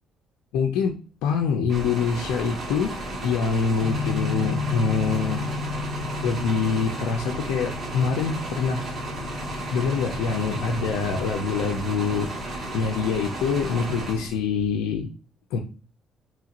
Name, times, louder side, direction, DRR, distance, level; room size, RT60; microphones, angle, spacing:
voice 1, 0.5-1.0 1.2-3.0 3.2-5.4 6.2-8.9 9.7-12.3 12.7-15.1 15.5-15.6, left 5 dB, 90° left, 1 dB, 0.4 m, -25 dB
sound 1, 1.7-14.7, right 1 dB, 50° right, 1.4 m, -34 dB
sound 2, 3.8-13.5, left 4 dB, 55° left, 0.7 m, -34 dB
3.0 x 2.8 x 2.5 m, 0.36 s
supercardioid pair, 80°, 0 cm